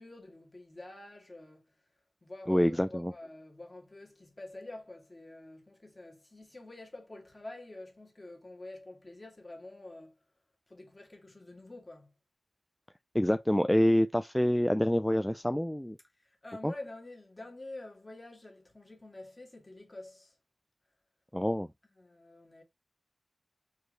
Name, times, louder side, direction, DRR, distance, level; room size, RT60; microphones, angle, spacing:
voice 1, 0.0-1.7 2.2-10.2 10.7-12.1 16.2-20.3 21.8-22.6, left 2 dB, 35° left, 1.9 m, -48 dB
voice 2, 2.5-3.1 13.1-16.0 16.6-16.7 21.3-21.7, equal, 5° left, 0.3 m, -26 dB
4.6 x 3.1 x 3.2 m
cardioid pair, 50°, 0 cm